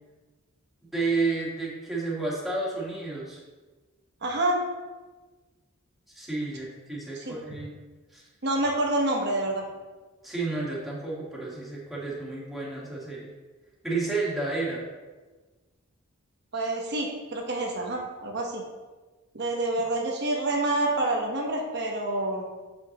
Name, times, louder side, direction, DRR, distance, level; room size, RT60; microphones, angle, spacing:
voice 1, 0.9-3.4 6.1-7.8 8.1-8.2 10.2-13.3 13.8-14.8, right 3 dB, ahead, -6 dB, 1.5 m, -31 dB
voice 2, 4.2-4.6 7.2-7.4 8.4-9.6 16.5-18.6 19.3-22.4, right 2 dB, 50° right, 0 dB, 1.1 m, -27 dB
6.9 x 5.3 x 3.0 m, 1.3 s
head